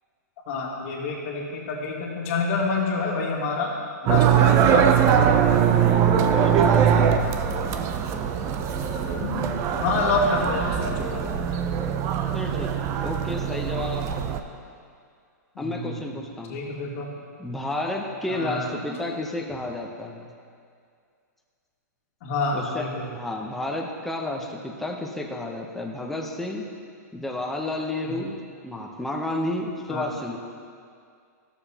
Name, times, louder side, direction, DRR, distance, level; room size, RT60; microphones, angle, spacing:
voice 1, 0.5-3.7 4.0-5.4 8.9-9.5 9.8-11.2 15.6-16.0 16.5-17.1 18.3-18.7 22.2-23.1 28.1-28.2 29.9-30.1, left 3 dB, 50° left, -2 dB, 1.9 m, -27 dB
sound 1, 4.1-14.4, right 8 dB, 30° right, 0.5 m, -22 dB
voice 2, 6.3-7.2 12.3-14.1 15.6-16.6 17.4-20.3 22.5-22.9 23.1-26.6 27.1-28.4 28.6-30.4, left 2 dB, 5° left, -1 dB, 0.8 m, -31 dB
13.5 x 6.9 x 2.9 m, 2.3 s
hypercardioid pair, 135°, 9 cm